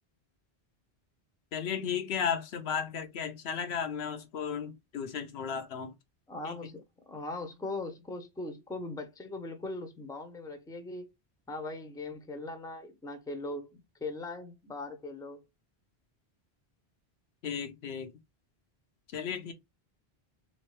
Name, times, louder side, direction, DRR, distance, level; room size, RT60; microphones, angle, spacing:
voice 1, 1.5-5.9 6.4-6.7 17.4-18.1 19.1-19.5, left 7 dB, 85° left, 1.0 m, -34 dB
voice 2, 6.3-11.1 11.5-15.4, left 2 dB, 5° left, 0.5 m, -40 dB
3.2 x 3.0 x 3.1 m
omnidirectional pair, 1.0 m